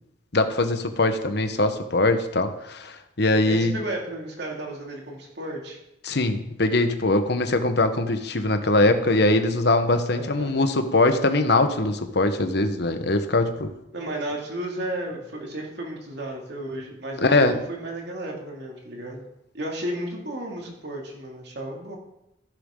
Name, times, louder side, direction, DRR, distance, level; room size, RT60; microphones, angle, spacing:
voice 1, 0.3-3.8 6.0-13.7 17.2-17.6, left 2 dB, 60° left, 7 dB, 1.2 m, -22 dB
voice 2, 3.4-5.8 10.1-10.6 13.9-19.2 19.5-22.0, right 1 dB, 60° right, 0 dB, 2.6 m, -33 dB
15.0 x 10.5 x 3.8 m, 0.85 s
head